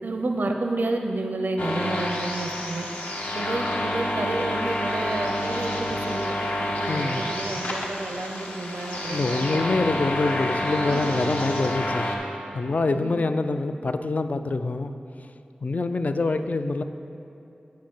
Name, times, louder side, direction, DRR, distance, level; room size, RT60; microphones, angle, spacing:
voice 1, 0.0-2.8 3.3-6.3 6.8-9.6 10.8-11.1 12.9-13.1, right 2 dB, 70° right, 4 dB, 0.5 m, -30 dB
sound 1, 1.6-12.2, left 1 dB, 75° left, 1.1 m, -29 dB
voice 2, 6.9-7.2 9.1-12.1 12.5-14.9 15.6-16.8, left 3 dB, 55° left, 9 dB, 0.4 m, -25 dB
8.5 x 5.2 x 6.1 m, 2.8 s
wide cardioid pair, 65°, 3 cm